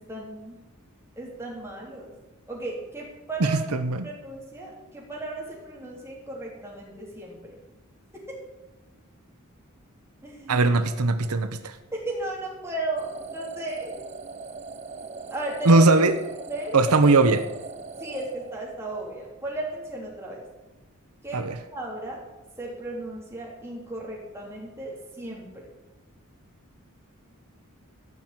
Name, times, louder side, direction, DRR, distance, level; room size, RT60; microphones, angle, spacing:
voice 1, 0.1-0.6 1.2-2.1 2.5-3.6 4.0-7.4 10.2-10.7 11.9-14.0 15.3-15.8 16.4-16.9 18.0-20.5 21.2-21.4 21.7-22.2 22.6-25.7, right 2 dB, 10° right, -3 dB, 3.7 m, -35 dB
voice 2, 3.4-4.1 10.5-11.8 15.6-16.2 16.7-17.4 21.3-21.6, right 3 dB, 85° right, 10 dB, 0.8 m, -20 dB
sound 1, 13.0-19.1, right 4 dB, 30° right, 0.6 m, -40 dB
15.0 x 6.0 x 9.3 m, 1.1 s
head